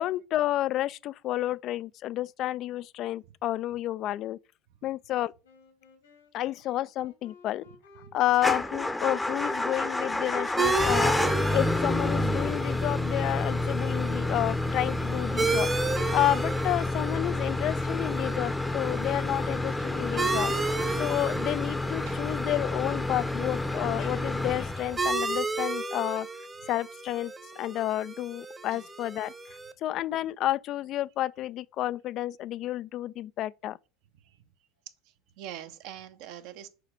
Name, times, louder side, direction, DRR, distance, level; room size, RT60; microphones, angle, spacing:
voice 1, 0.0-4.4 4.8-5.3 6.3-7.7 8.1-11.2 11.5-26.3 26.7-29.3 29.8-33.8, left 14 dB, 50° left, 0.3 m, -30 dB
sound 1, 5.4-14.6, left 3 dB, 90° left, 2.1 m, -56 dB
Motor vehicle (road) / Engine starting / Idling, 8.3-25.3, left 2 dB, 10° left, 0.7 m, -29 dB
sound 2, 10.6-29.7, right 3 dB, 15° right, 0.9 m, -34 dB
voice 2, 22.0-22.4 28.7-28.9 34.2-34.5 35.0-36.7, right 11 dB, 60° right, 1.0 m, -45 dB
6.7 x 5.0 x 4.9 m
hypercardioid pair, 90°, 0 cm